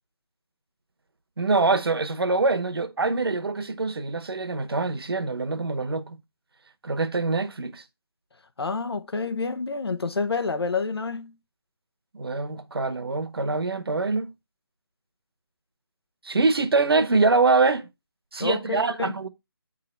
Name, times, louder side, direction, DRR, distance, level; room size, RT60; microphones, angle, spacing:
voice 1, 1.4-6.2 6.8-7.8 12.1-14.3 16.2-17.9 18.3-19.3, right 3 dB, 70° right, 1.2 m, -24 dB
voice 2, 8.6-11.4 18.4-19.1, left 4 dB, 80° left, 1.0 m, -28 dB
8.5 x 3.8 x 4.4 m
figure-of-eight pair, 165°, 13 cm